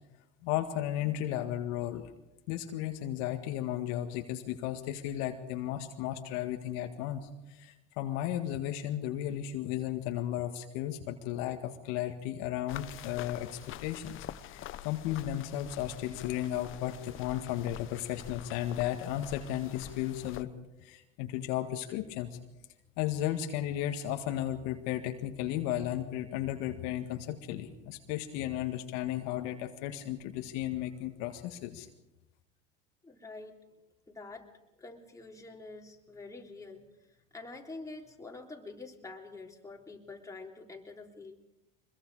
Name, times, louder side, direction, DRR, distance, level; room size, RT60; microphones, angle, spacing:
voice 1, 0.4-2.1 2.5-7.2 7.5-20.5 20.8-22.3 23.0-31.9, left 12 dB, 65° left, 5 dB, 1.9 m, -34 dB
sound 1, 12.7-20.4, left 12 dB, 45° left, 1.0 m, -46 dB
voice 2, 33.0-33.6 34.1-34.5 34.8-41.3, left 3 dB, 10° left, 0 dB, 3.5 m, -47 dB
24.0 x 22.0 x 4.9 m, 0.94 s
hypercardioid pair, 100°, 29 cm